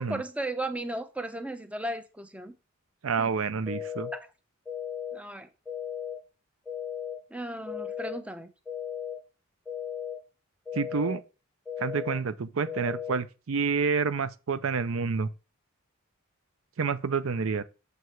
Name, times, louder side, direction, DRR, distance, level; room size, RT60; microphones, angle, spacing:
voice 1, 0.0-2.5 3.2-3.3 4.1-4.2 5.1-5.5 7.3-8.5, right 1 dB, 5° right, 0.7 m, -35 dB
voice 2, 3.0-4.1 10.7-11.2 11.8-15.3 16.8-17.6, right 5 dB, 70° right, 0.5 m, -28 dB
sound 1, 3.7-4.2 4.7-5.2 5.7-6.2 6.7-7.2 7.7-8.2 8.7-9.2 9.7-10.2 10.7-11.2 11.7-12.2 12.7-13.2, left 9 dB, 10° left, 1.8 m, -36 dB
6.7 x 4.8 x 4.6 m
head